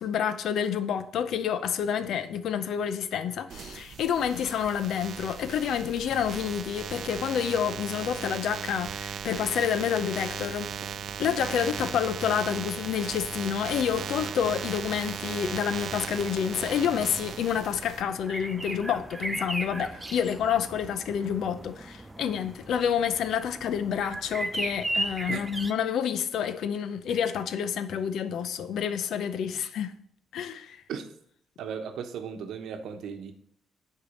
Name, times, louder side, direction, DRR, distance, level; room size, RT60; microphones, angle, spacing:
voice 1, 0.0-10.9 11.2-29.9 30.3-30.8, left 8 dB, 75° left, 0.6 m, -28 dB
sound 1, 3.5-18.0, right 7 dB, 60° right, 0.5 m, -37 dB
sound 2, 10.6-25.7, right 1 dB, 15° right, 0.6 m, -39 dB
voice 2, 31.6-33.3, right 7 dB, 80° right, 0.9 m, -36 dB
6.9 x 4.7 x 6.5 m
cardioid pair, 90°, 0 cm